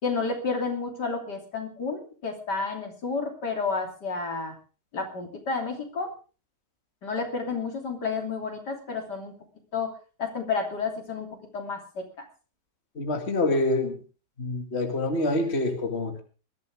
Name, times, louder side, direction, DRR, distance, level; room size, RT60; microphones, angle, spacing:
voice 1, 0.0-4.6 4.9-6.1 7.0-9.3 9.7-9.9 10.2-11.3 11.5-12.0, left 4 dB, 70° left, 3 dB, 3.6 m, -30 dB
voice 2, 13.0-14.0 14.4-16.2, left 2 dB, 40° left, 4 dB, 2.4 m, -26 dB
21.0 x 13.5 x 3.6 m, 0.35 s
omnidirectional pair, 1.9 m